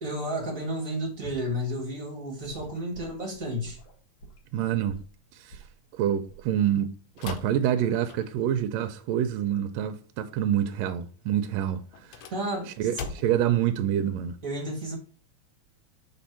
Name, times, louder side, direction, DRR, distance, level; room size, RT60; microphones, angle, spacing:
voice 1, 0.0-3.8 12.3-12.9 14.4-15.0, equal, 45° right, 1.2 m, -32 dB
Gurgling / Sink (filling or washing) / Liquid, 1.2-1.5 2.4-5.1 5.5-5.8 6.3-6.5 7.4-7.7, right 1 dB, 55° left, 2.4 m, -46 dB
voice 2, 4.5-5.0 5.3-5.6 6.0-12.3 12.8-14.4, right 10 dB, 80° right, 1.7 m, -27 dB
sound 1, 7.2-8.6 11.9-13.6, left 5 dB, 75° left, 1.8 m, -41 dB
5.1 x 3.6 x 5.7 m
omnidirectional pair, 3.3 m